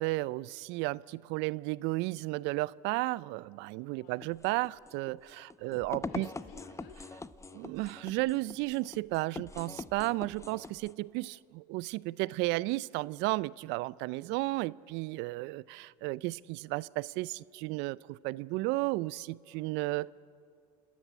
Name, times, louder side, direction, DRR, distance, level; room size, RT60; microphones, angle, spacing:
voice 1, 0.0-6.3 7.5-20.1, right 21 dB, 65° right, 0.4 m, -33 dB
sound 1, 4.2-10.9, left 3 dB, 15° left, 0.7 m, -44 dB
voice 2, 5.6-6.9 19.5-19.7, left 6 dB, 75° left, 3.8 m, -54 dB
28.0 x 13.0 x 10.0 m
hypercardioid pair, 80°, 20 cm